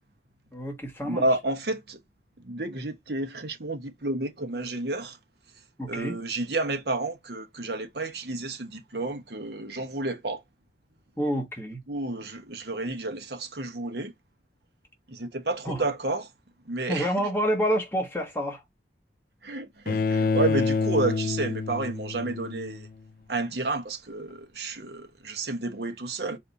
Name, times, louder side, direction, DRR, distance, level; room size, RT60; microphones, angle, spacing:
voice 1, 0.5-1.2 5.8-6.1 11.2-11.8 15.6-15.8 16.9-18.6, equal, 15° left, 1.2 m, -28 dB
voice 2, 1.0-2.0 2.4-5.2 5.9-10.4 11.9-14.1 15.1-16.3 16.7-17.1 19.4-22.9 23.3-26.4, right 2 dB, 60° right, 1.1 m, -31 dB
Bowed string instrument, 19.9-22.9, left 4 dB, 50° left, 0.3 m, -27 dB
4.2 x 2.7 x 4.0 m
head